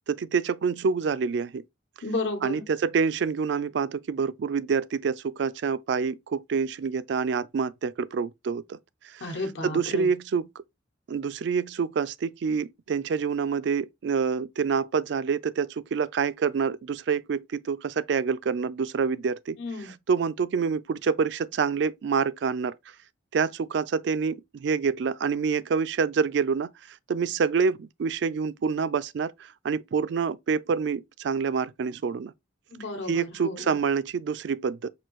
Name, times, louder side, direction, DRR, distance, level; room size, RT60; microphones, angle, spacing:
voice 1, 0.1-1.6 2.4-8.8 9.1-9.3 9.6-10.5 11.1-22.7 23.3-32.3 33.1-34.9, right 5 dB, 60° right, 0.3 m, -27 dB
voice 2, 2.0-2.6 9.2-10.1 19.6-19.9 32.7-33.8, left 2 dB, 65° left, 1.1 m, -33 dB
6.0 x 2.6 x 3.0 m
head